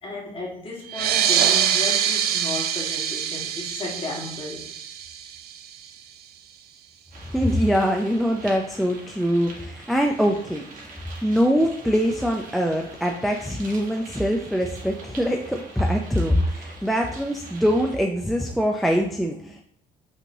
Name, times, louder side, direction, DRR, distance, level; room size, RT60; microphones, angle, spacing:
voice 1, 0.0-4.8, left 2 dB, 30° left, -2 dB, 1.3 m, -34 dB
sound 1, 0.9-6.0, right 9 dB, 70° right, 0.4 m, -24 dB
sound 2, 7.1-18.0, right 3 dB, 50° right, 1.2 m, -44 dB
voice 2, 7.3-19.6, equal, ahead, 2 dB, 0.3 m, -23 dB
5.4 x 2.9 x 2.6 m, 0.64 s
cardioid pair, 110°, 17 cm